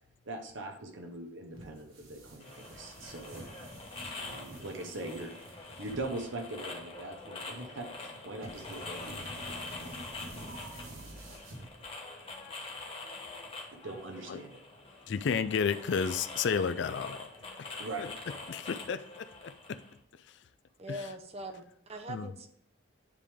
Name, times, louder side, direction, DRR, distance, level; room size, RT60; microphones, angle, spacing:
voice 1, 0.2-3.4 4.2-9.3 13.7-14.9 17.8-18.1, right 2 dB, 65° right, 4 dB, 0.9 m, -42 dB
sound 1, 1.5-12.1, right 1 dB, 85° right, 1.4 m, -48 dB
sound 2, 2.4-19.9, left 3 dB, 25° left, 1.0 m, -45 dB
voice 2, 15.1-17.3 17.6-18.1 18.5-19.8 20.9-21.0 22.1-22.3, left 6 dB, 60° left, 12 dB, 0.4 m, -32 dB
voice 3, 20.8-21.6 21.9-22.5, right 1 dB, 30° right, 6 dB, 0.6 m, -41 dB
9.9 x 3.4 x 3.5 m, 0.69 s
head